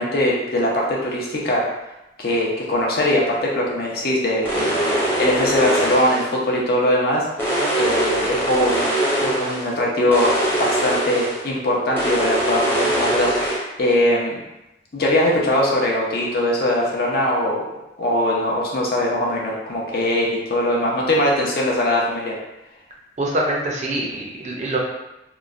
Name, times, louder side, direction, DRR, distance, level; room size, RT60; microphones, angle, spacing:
voice 1, 0.0-1.6 2.2-4.8 5.2-8.8 9.2-10.3 10.6-14.4 14.9-17.6 18.0-22.4, left 1 dB, 55° left, -3 dB, 0.6 m, -21 dB
sound 1, 4.4-6.3 7.4-9.7 10.1-11.4 11.9-13.6, right 1 dB, 10° left, 0.7 m, -22 dB
voice 2, 23.2-24.8, right 1 dB, 40° right, -2 dB, 0.4 m, -24 dB
3.0 x 2.1 x 2.4 m, 0.94 s
head